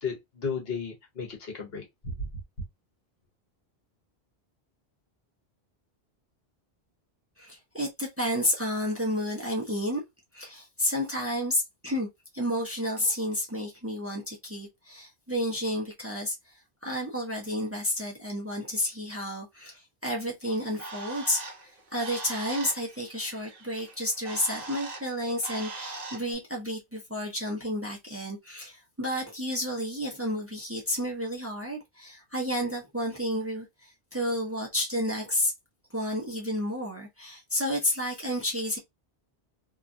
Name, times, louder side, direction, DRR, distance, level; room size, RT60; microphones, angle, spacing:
voice 1, 0.0-2.1, left 5 dB, 70° left, 1.2 m, -34 dB
voice 2, 7.4-10.0 10.3-12.1 12.3-35.5 35.9-38.8, left 1 dB, 15° right, 0.7 m, -31 dB
Bird, 20.4-26.3, right 2 dB, 45° right, 0.9 m, -41 dB
2.8 x 2.3 x 2.5 m
omnidirectional pair, 1.1 m